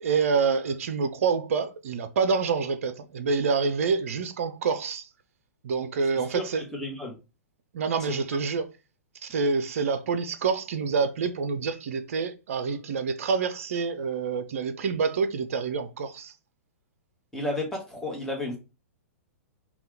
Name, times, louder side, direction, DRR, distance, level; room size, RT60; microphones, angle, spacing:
voice 1, 0.0-5.1 5.6-6.6 7.7-8.7 9.2-16.3, right 5 dB, 60° right, 0.4 m, -27 dB
voice 2, 6.3-7.2 17.3-18.6, left 1 dB, 5° left, 1.1 m, -32 dB
2.8 x 2.3 x 3.4 m
figure-of-eight pair, 110°, 8 cm